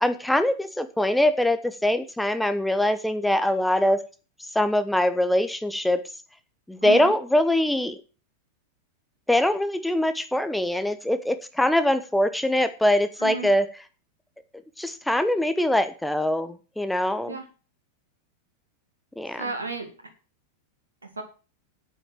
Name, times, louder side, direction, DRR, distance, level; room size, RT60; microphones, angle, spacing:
voice 1, 0.0-4.0 4.5-6.0 6.7-8.0 9.3-13.7 14.8-17.4 19.2-19.5, left 1 dB, 5° left, 10 dB, 1.1 m, -23 dB
voice 2, 6.8-7.1 13.2-13.5 17.3-17.4 19.4-19.9 21.2-21.3, right 3 dB, 75° right, 5 dB, 1.9 m, -32 dB
9.0 x 8.6 x 7.5 m, 0.35 s
figure-of-eight pair, 90°, 0 cm